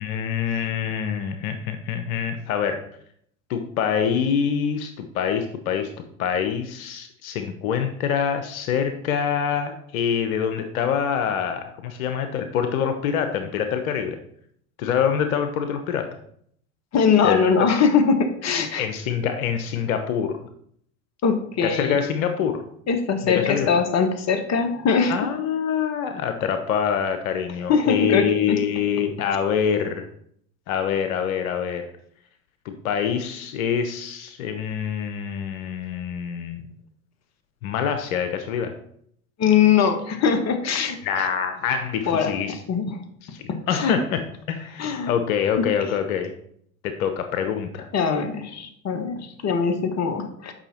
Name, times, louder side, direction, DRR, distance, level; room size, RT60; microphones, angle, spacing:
voice 1, 0.0-2.9 3.5-5.9 6.2-14.2 14.8-16.2 17.2-17.4 18.8-20.4 21.6-22.6 23.2-23.7 25.1-30.1 30.7-31.9 32.6-36.6 37.6-38.7 41.0-42.5 43.3-44.2 44.5-46.3 46.8-47.9, left 7 dB, 80° left, 7 dB, 1.1 m, -25 dB
voice 2, 16.9-18.9 21.2-22.0 22.9-25.3 27.7-28.6 39.4-41.3 42.1-42.3 42.7-43.0 43.5-44.0 44.8-45.1 45.6-45.7 47.9-50.5, left 6 dB, 40° left, 6 dB, 1.6 m, -22 dB
8.8 x 5.8 x 4.4 m, 0.66 s
hypercardioid pair, 90°, 42 cm